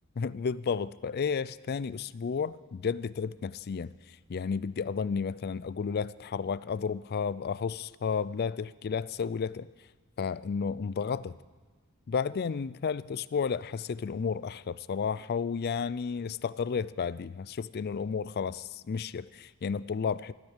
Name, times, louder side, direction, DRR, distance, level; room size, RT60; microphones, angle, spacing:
voice 1, 0.2-9.7 10.2-11.3 12.1-20.3, left 6 dB, 45° left, 18 dB, 0.4 m, -32 dB
14.0 x 12.0 x 7.3 m, 1.3 s
head